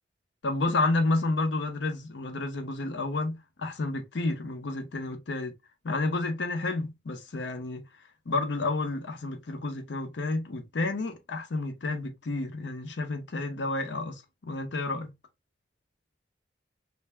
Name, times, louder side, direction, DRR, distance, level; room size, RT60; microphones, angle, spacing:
voice 1, 0.4-5.5 5.8-7.8 8.3-15.1, left 2 dB, 75° left, 0.6 m, -30 dB
3.3 x 2.5 x 3.2 m
head